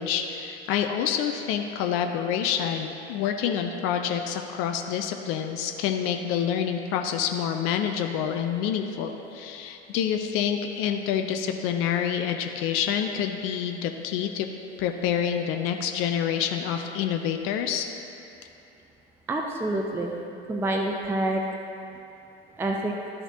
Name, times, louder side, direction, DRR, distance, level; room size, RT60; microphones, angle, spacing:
voice 1, 0.0-14.5 14.8-17.8, left 8 dB, 40° left, 5 dB, 0.6 m, -27 dB
voice 2, 19.3-20.2 20.5-21.4 22.6-22.9, right 2 dB, 5° right, 1 dB, 0.5 m, -27 dB
12.5 x 5.7 x 2.8 m, 2.8 s
figure-of-eight pair, 75°, 33 cm